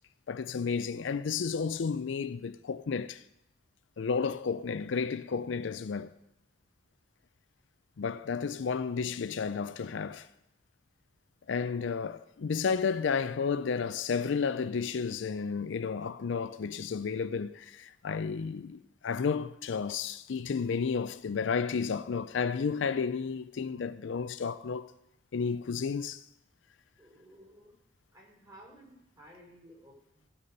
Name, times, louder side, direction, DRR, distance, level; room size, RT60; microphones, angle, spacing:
voice 1, 0.3-3.2 4.0-6.1 8.0-10.3 11.5-24.9 25.3-26.2, left 5 dB, 75° left, 0.4 m, -32 dB
voice 2, 27.0-27.7 28.1-30.3, equal, 20° right, 3.7 m, -55 dB
14.5 x 6.8 x 5.3 m
head